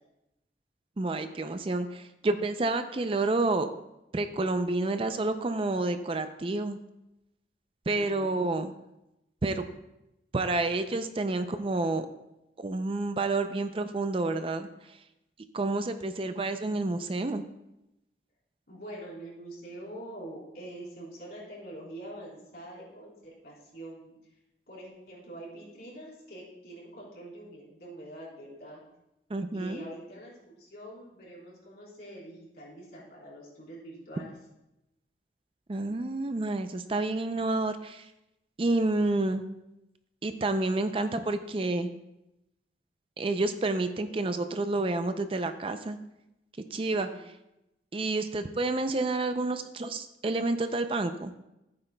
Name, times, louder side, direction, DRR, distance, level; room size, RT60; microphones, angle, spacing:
voice 1, 1.0-3.7 4.1-6.8 7.9-8.7 9.4-9.6 10.3-12.1 12.6-15.0 15.5-17.4 29.3-29.8 35.7-38.1 38.6-39.4 40.2-41.9 43.2-46.0 46.7-47.3 47.9-51.3, right 2 dB, 30° right, 9 dB, 0.4 m, -29 dB
voice 2, 7.9-8.5 18.7-24.2 24.7-28.8 29.5-34.3 46.9-47.2, right 1 dB, 60° left, -5 dB, 4.0 m, -45 dB
15.0 x 8.8 x 2.2 m, 0.90 s
head